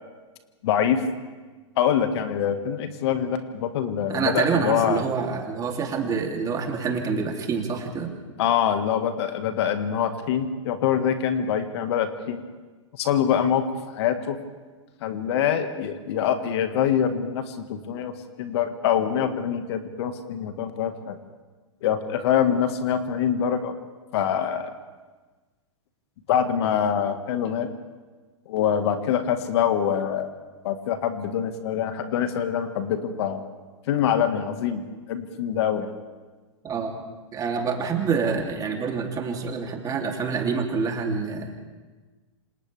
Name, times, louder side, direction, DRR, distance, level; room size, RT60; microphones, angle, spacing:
voice 1, 0.6-1.0 1.8-5.0 8.4-12.4 13.0-13.6 13.9-14.4 15.0-21.2 21.8-23.7 24.1-24.7 26.3-27.7 28.5-30.3 30.6-33.4 33.9-35.9, left 9 dB, 55° left, 8 dB, 1.8 m, -24 dB
voice 2, 4.1-8.1 36.6-37.0 37.3-41.6, right 5 dB, 20° right, 1 dB, 3.1 m, -27 dB
27.5 x 27.0 x 3.5 m, 1.3 s
hypercardioid pair, 115°, 16 cm